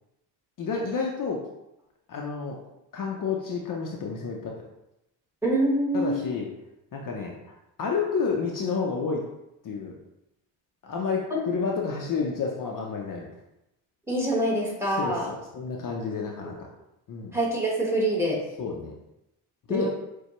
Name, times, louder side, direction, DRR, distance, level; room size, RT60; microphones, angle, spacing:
voice 1, 0.6-1.4 2.1-2.6 2.9-4.7 5.9-6.5 6.9-7.5 7.8-9.2 9.6-10.0 10.8-13.3 14.9-16.5 17.1-17.3 18.6-19.0 19.7-19.9, left 5 dB, 45° left, -1 dB, 0.6 m, -30 dB
voice 2, 5.4-6.2 11.3-11.4 14.1-15.3 17.3-18.4 19.7-19.9, right 1 dB, 5° right, -3 dB, 1.3 m, -25 dB
6.5 x 2.3 x 3.0 m, 0.88 s
cardioid pair, 95°, 45 cm